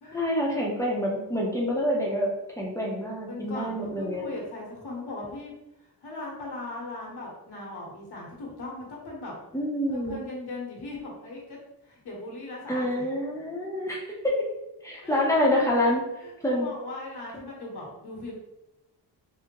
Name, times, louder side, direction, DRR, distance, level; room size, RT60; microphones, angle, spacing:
voice 1, 0.1-2.3 2.6-4.3 9.5-10.2 12.7-14.4 14.8-16.0 16.4-16.7, left 1 dB, 5° left, -3 dB, 0.6 m, -27 dB
voice 2, 3.3-5.5 6.0-9.3 9.9-11.6 11.8-13.0 15.0-15.2 16.2-18.3, left 2 dB, 70° left, -3 dB, 1.2 m, -38 dB
3.6 x 2.1 x 3.0 m, 0.93 s
wide cardioid pair, 150°, 41 cm